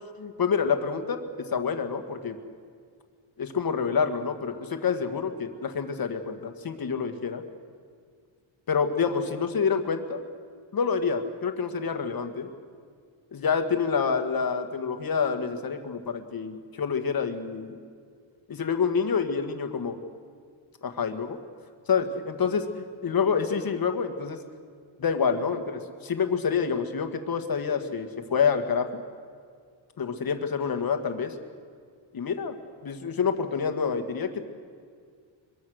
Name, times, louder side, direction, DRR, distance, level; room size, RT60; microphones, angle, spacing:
voice 1, 0.2-1.2 1.5-2.4 3.4-7.4 8.7-10.2 10.7-12.5 13.3-17.8 18.5-20.0 20.8-21.4 21.9-24.4 25.0-25.6 26.0-29.0 30.0-31.4 32.1-32.5 32.8-34.4, left 6 dB, 45° left, 7 dB, 1.8 m, -27 dB
24.0 x 22.5 x 6.4 m, 2.1 s
wide cardioid pair, 160°, 48 cm